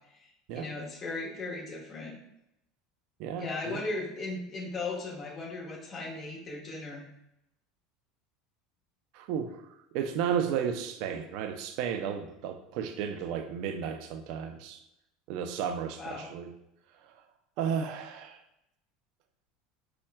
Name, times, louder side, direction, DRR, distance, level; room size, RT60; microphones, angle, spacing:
voice 1, 0.2-2.1 3.4-7.1 16.0-16.3, left 3 dB, 35° left, -4 dB, 1.3 m, -37 dB
voice 2, 3.2-3.8 9.1-9.6 9.9-14.8 15.3-16.5 17.6-18.4, right 8 dB, 65° right, 7 dB, 0.5 m, -33 dB
5.5 x 2.3 x 2.2 m, 0.81 s
supercardioid pair, 105°, 0 cm